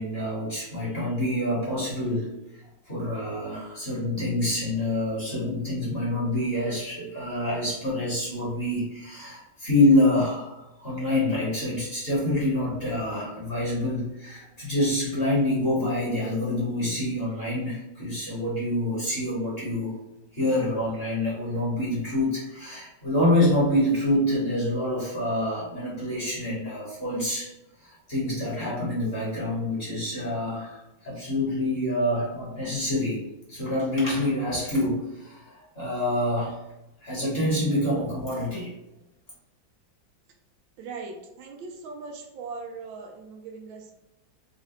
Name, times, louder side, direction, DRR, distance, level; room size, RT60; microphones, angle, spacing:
voice 1, 0.0-2.3 2.9-19.9 20.3-27.5 27.8-33.2 33.5-36.6 37.0-38.7, left 1 dB, 35° left, -7 dB, 1.5 m, -26 dB
voice 2, 40.8-43.9, right 4 dB, 80° right, 2 dB, 1.4 m, -39 dB
4.1 x 2.6 x 3.9 m, 0.91 s
omnidirectional pair, 2.1 m